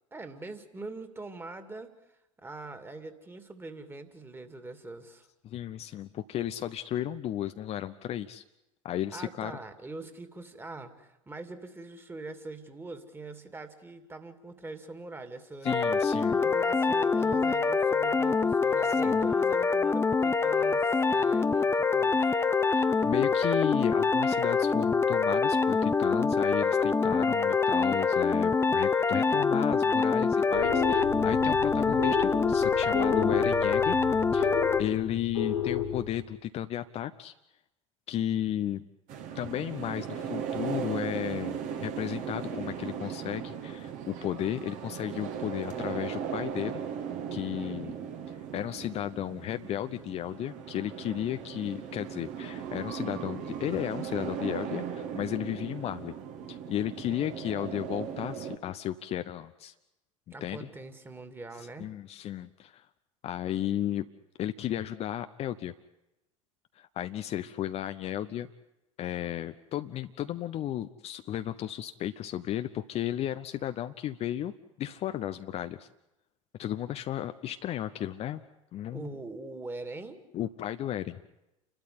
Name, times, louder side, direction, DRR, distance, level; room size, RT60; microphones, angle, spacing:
voice 1, 0.1-1.9 2.4-5.3 9.1-15.7 16.3-22.9 47.6-48.1 60.3-61.9 78.9-80.2, right 3 dB, 15° right, 9 dB, 2.5 m, -43 dB
voice 2, 5.4-8.4 8.8-9.5 15.6-16.4 19.0-19.3 22.7-34.0 34.3-37.3 38.1-38.9 39.3-46.8 47.3-47.9 48.5-56.2 56.5-59.7 60.4-60.7 61.8-62.8 63.2-64.1 64.4-65.7 66.8-68.5 69.0-74.5 74.8-75.9 76.6-78.4 78.7-79.1 80.3-81.2, left 11 dB, 40° left, 10 dB, 0.8 m, -34 dB
sound 1, 15.7-34.8, left 4 dB, 15° left, 1.1 m, -25 dB
sound 2, 30.5-36.3, left 8 dB, 75° left, 3.2 m, -33 dB
sound 3, 39.1-58.6, right 8 dB, 50° right, 2.1 m, -37 dB
29.0 x 12.5 x 9.8 m, 0.94 s
figure-of-eight pair, 75°, 17 cm